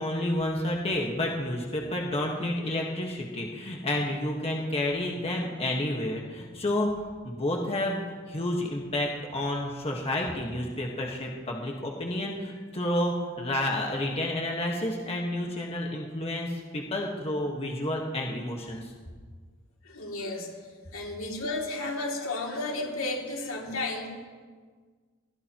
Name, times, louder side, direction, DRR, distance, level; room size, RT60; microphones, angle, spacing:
voice 1, 0.0-6.9 7.2-8.0 8.3-18.8, left 1 dB, 30° left, 0 dB, 1.5 m, -30 dB
voice 2, 19.8-20.5 20.9-24.1, left 2 dB, 80° left, -1 dB, 2.8 m, -33 dB
23.5 x 16.0 x 3.1 m, 1.5 s
head